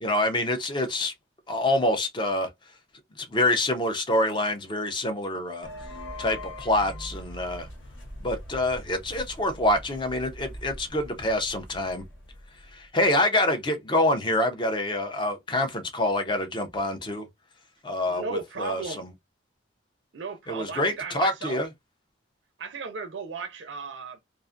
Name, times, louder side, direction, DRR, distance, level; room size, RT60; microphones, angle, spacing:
voice 1, 0.0-1.1 1.5-2.5 3.2-5.7 6.2-7.7 8.2-12.0 12.7-17.3 17.8-19.1 20.5-21.7, left 1 dB, 25° left, 0.5 m, -26 dB
sound 1, 5.6-13.1, left 1 dB, 80° left, 0.8 m, -42 dB
voice 2, 18.1-19.0 20.1-21.6 22.6-24.2, right 4 dB, 70° right, 0.5 m, -35 dB
2.4 x 2.4 x 2.4 m
head